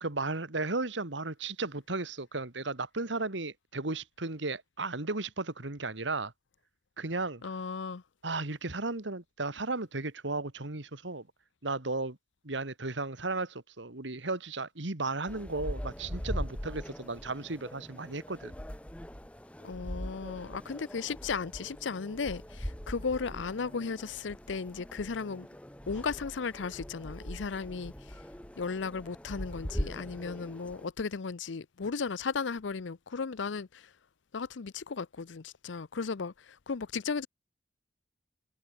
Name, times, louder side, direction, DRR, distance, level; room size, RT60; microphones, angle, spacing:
voice 1, 0.0-6.3 7.0-7.4 8.2-11.3 11.6-12.2 12.4-18.5, right 3 dB, 80° right, 2.1 m, -35 dB
voice 2, 7.4-8.0 19.6-25.5 25.9-28.1 28.6-33.9 34.3-37.3, left 5 dB, 85° left, 0.6 m, -35 dB
sound 1, 15.3-30.9, equal, 5° left, 1.0 m, -41 dB
head